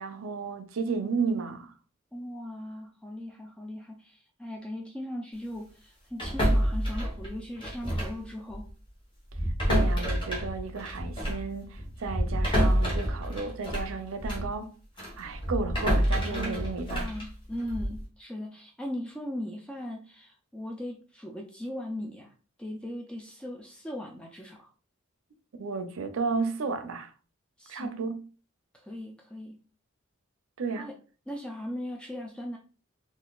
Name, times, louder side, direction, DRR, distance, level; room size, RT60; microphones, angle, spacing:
voice 1, 0.0-1.7 9.7-14.7 15.2-17.1 25.6-27.1 27.7-28.3 30.6-30.9, right 4 dB, 80° right, 0.5 m, -33 dB
voice 2, 2.1-8.7 16.3-22.3 22.6-24.7 27.6-28.0 28.8-29.6 30.8-30.9 31.3-32.6, left 1 dB, 5° left, 0.4 m, -38 dB
sound 1, 6.2-8.2 8.5-8.7 9.3-14.5 15.0-18.0, equal, 25° left, 1.1 m, -28 dB
3.9 x 2.5 x 2.3 m
head